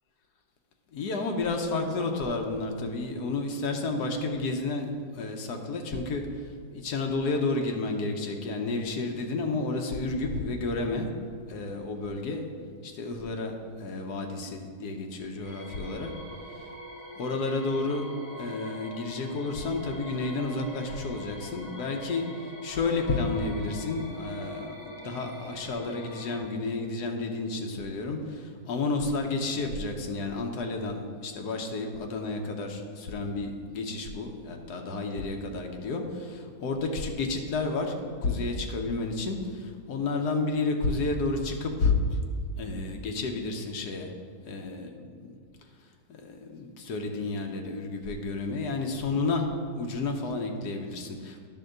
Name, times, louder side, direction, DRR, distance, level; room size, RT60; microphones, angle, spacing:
voice 1, 0.9-4.9 5.2-6.2 6.7-11.1 11.5-12.5 12.8-16.1 17.1-18.0 18.4-22.2 22.6-37.9 38.2-42.0 42.6-44.1 44.4-45.4 46.1-49.5 49.7-51.5, left 3 dB, 85° left, 3 dB, 1.4 m, -31 dB
sound 1, 15.4-26.4, equal, 25° right, 1.7 m, -44 dB
10.5 x 3.8 x 6.5 m, 2.1 s
omnidirectional pair, 1.7 m